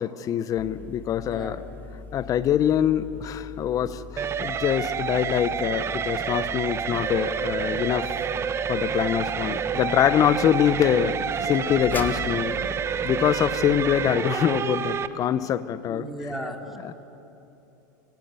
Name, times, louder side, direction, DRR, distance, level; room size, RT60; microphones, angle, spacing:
voice 1, 0.0-1.6 2.1-8.1 8.7-12.6 13.0-16.1 16.8-16.9, left 10 dB, 35° left, 0.8 m, -24 dB
sound 1, 0.6-14.1, left 4 dB, 20° left, 1.8 m, -41 dB
voice 2, 1.2-1.6 15.9-16.9, right 1 dB, ahead, 2.7 m, -36 dB
sound 2, 4.2-15.1, right 7 dB, 25° right, 0.8 m, -28 dB
25.0 x 17.5 x 7.7 m
hypercardioid pair, 110°, 10 cm